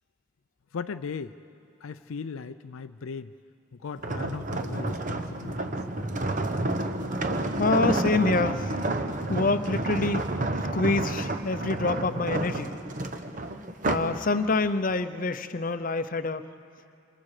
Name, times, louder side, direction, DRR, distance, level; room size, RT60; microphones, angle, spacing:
voice 1, 0.7-1.3 1.8-3.3 3.8-5.8, left 5 dB, 80° left, 9 dB, 0.4 m, -37 dB
sound 1, 4.0-14.2 14.6-14.9, right 2 dB, 40° right, 1.0 m, -30 dB
voice 2, 7.6-8.7 9.3-10.2 10.7-12.7 13.9-16.5, left 3 dB, 40° left, 11 dB, 0.6 m, -26 dB
27.5 x 26.0 x 4.9 m, 2.5 s
head